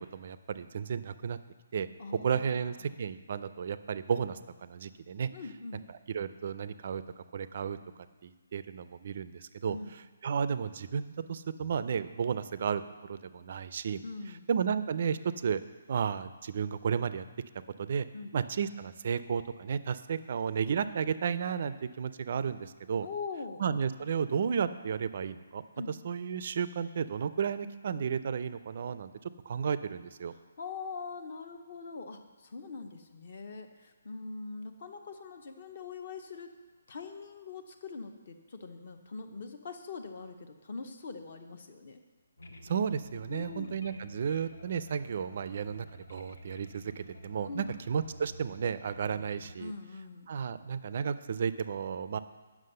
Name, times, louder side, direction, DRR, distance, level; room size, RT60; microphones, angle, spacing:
voice 1, 0.1-1.4 1.7-5.3 6.1-7.0 7.3-7.8 8.2-9.8 10.2-12.8 13.1-14.0 14.5-15.6 15.9-17.2 17.8-18.1 18.3-23.1 23.6-25.6 26.0-29.1 29.5-30.3 42.6-49.7 50.3-52.2, right 7 dB, 35° right, 14 dB, 0.4 m, -33 dB
voice 2, 2.0-2.8 5.3-5.9 9.7-10.0 14.0-14.5 18.1-18.3 23.0-23.6 25.8-25.9 30.3-36.5 36.9-42.0 43.3-43.7 47.5-47.8 49.6-50.3, left 4 dB, 40° left, 6 dB, 0.7 m, -42 dB
sound 1, 42.4-49.5, left 1 dB, 85° left, 1.1 m, -50 dB
9.4 x 6.1 x 6.6 m, 1.3 s
hypercardioid pair, 180°, 0 cm